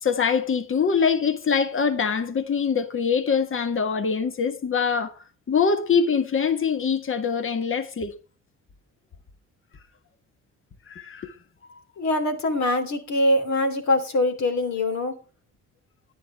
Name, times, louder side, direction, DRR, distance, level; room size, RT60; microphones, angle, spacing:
voice 1, 0.0-5.1 5.5-8.1 10.9-11.3, left 6 dB, 45° left, 1.7 m, -23 dB
voice 2, 12.0-15.1, left 1 dB, 65° left, 2.9 m, -23 dB
10.5 x 10.0 x 4.6 m
cardioid pair, 90°, 30 cm